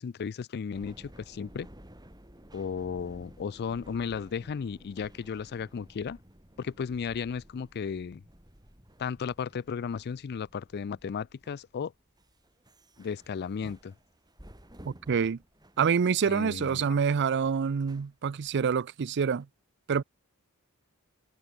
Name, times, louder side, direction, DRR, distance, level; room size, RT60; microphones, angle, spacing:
voice 1, 0.0-1.7 2.5-6.2 6.6-8.2 9.0-11.9 13.0-13.9 16.3-17.0, left 6 dB, 50° left, 0.4 m, -35 dB
sound 1, 0.7-16.3 16.8-17.1 17.7-18.6 19.4-19.5, equal, 20° right, 6.8 m, -54 dB
voice 2, 14.9-15.4 15.8-19.5 19.9-20.0, right 6 dB, 50° right, 0.5 m, -27 dB
head